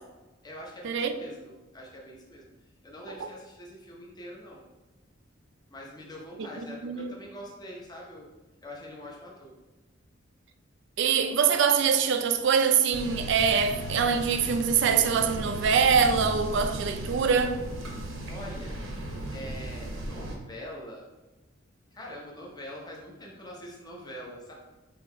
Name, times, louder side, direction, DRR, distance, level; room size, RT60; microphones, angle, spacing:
voice 1, 0.4-2.5 2.8-4.7 5.7-8.3 8.6-9.5 18.3-18.8 19.3-21.1 21.9-24.5, equal, 20° left, 0.7 m, -44 dB
voice 2, 11.0-17.6, right 6 dB, 65° right, 0.4 m, -24 dB
sound 1, 12.9-20.4, right 1 dB, 85° right, 0.8 m, -36 dB
3.8 x 2.8 x 4.4 m
head